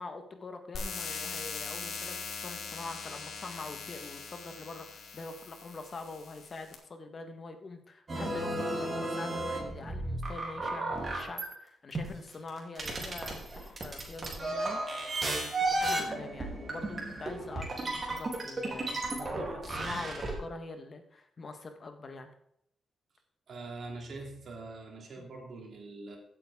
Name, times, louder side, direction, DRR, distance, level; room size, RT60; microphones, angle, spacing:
voice 1, 0.0-22.3, left 3 dB, 35° left, 7 dB, 1.3 m, -44 dB
sound 1, 0.7-6.7, left 5 dB, 70° left, 2.3 m, -41 dB
sound 2, 8.1-11.5 12.0-20.3, right 2 dB, 30° right, 3.1 m, -34 dB
voice 2, 23.5-26.2, right 3 dB, 50° right, 1 dB, 3.1 m, -43 dB
16.0 x 8.5 x 3.6 m, 0.73 s
wide cardioid pair, 140°, 0 cm